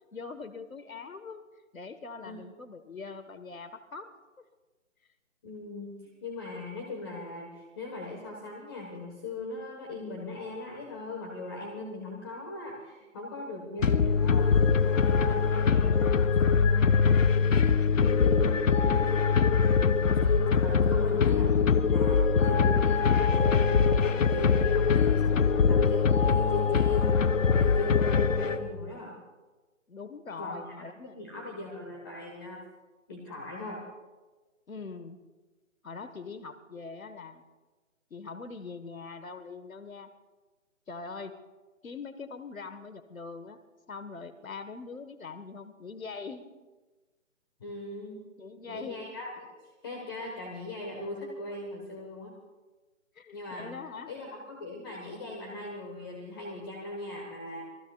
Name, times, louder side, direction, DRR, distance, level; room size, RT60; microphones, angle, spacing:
voice 1, 0.1-1.5 1.7-4.1 29.9-31.2 34.7-35.2 35.8-37.4 38.1-40.1 40.9-41.4 41.8-43.6 43.9-46.6 48.4-49.1 53.1-54.1, left 4 dB, 85° left, 11 dB, 1.5 m, -42 dB
voice 2, 5.4-17.6 17.9-21.5 21.9-29.2 30.4-30.6 31.0-32.6 33.1-33.8 47.6-48.2 48.7-49.5 49.8-52.3 53.3-53.8 54.1-57.6, left 2 dB, 15° left, 0 dB, 1.3 m, -39 dB
sound 1, 13.8-28.9, left 5 dB, 70° left, 0.9 m, -23 dB
28.0 x 20.5 x 2.4 m, 1.2 s
figure-of-eight pair, 165°, 40 cm